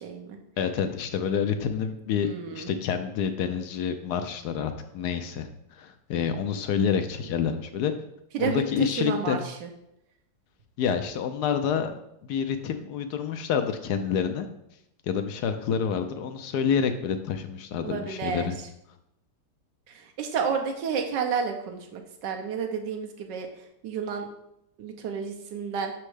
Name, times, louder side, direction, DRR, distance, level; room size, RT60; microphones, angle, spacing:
voice 1, 0.0-0.4 2.2-2.7 8.3-9.7 17.8-18.5 19.9-23.5 23.8-24.3 24.8-25.9, right 6 dB, 85° right, 4 dB, 1.5 m, -31 dB
voice 2, 0.6-7.9 8.4-9.4 10.8-11.9 12.2-14.5 15.1-18.6, left 7 dB, 75° left, 8 dB, 1.1 m, -28 dB
6.1 x 4.4 x 4.8 m, 0.79 s
omnidirectional pair, 1.9 m